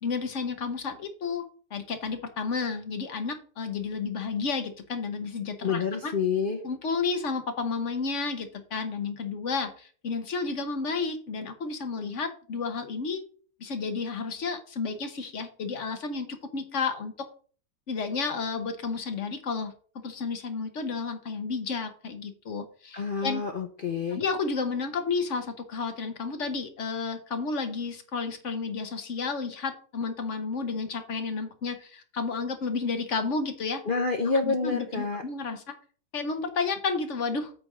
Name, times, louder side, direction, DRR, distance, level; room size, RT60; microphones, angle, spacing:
voice 1, 0.0-1.4 1.7-6.1 6.6-13.2 13.6-17.3 17.9-19.7 20.0-23.4 24.1-33.8 34.3-35.8 36.1-37.5, left 4 dB, 50° left, 8 dB, 1.1 m, -31 dB
voice 2, 5.6-6.6 22.9-24.2 33.9-35.2, left 4 dB, 80° left, 5 dB, 0.4 m, -28 dB
8.5 x 3.4 x 6.1 m, 0.43 s
omnidirectional pair, 2.0 m